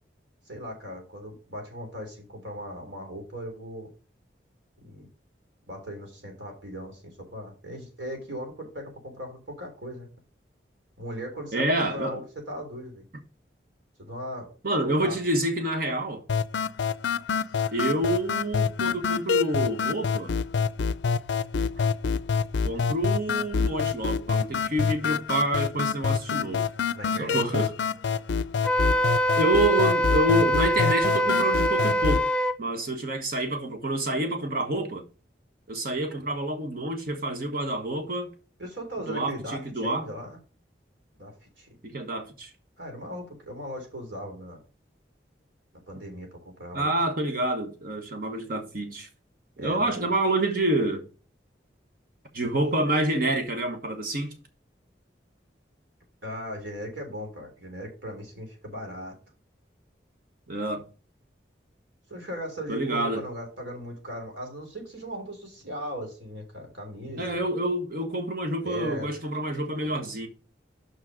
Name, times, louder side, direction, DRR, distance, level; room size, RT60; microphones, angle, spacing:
voice 1, 0.5-3.9 4.8-5.1 5.7-10.1 11.0-13.0 14.0-14.5 15.0-15.2 26.9-27.7 38.6-40.4 41.1-41.7 42.8-44.6 45.9-46.9 49.6-50.2 56.2-59.2 62.1-67.4 68.6-69.1 69.8-69.9, equal, 85° right, 3.4 m, -38 dB
voice 2, 11.5-12.2 14.6-16.2 17.7-20.3 21.8-21.9 22.6-26.6 27.2-27.7 29.3-32.3 32.6-35.0 35.7-38.3 39.1-40.1 41.8-42.5 46.7-49.1 49.6-51.0 52.3-54.3 60.5-60.8 62.7-63.2 67.2-70.3, right 1 dB, 50° right, 1.3 m, -27 dB
sound 1, 16.3-32.3, left 5 dB, 80° left, 0.4 m, -27 dB
Wind instrument woodwind instrument, 28.6-32.6, equal, 5° left, 0.3 m, -24 dB
6.2 x 5.7 x 5.0 m
head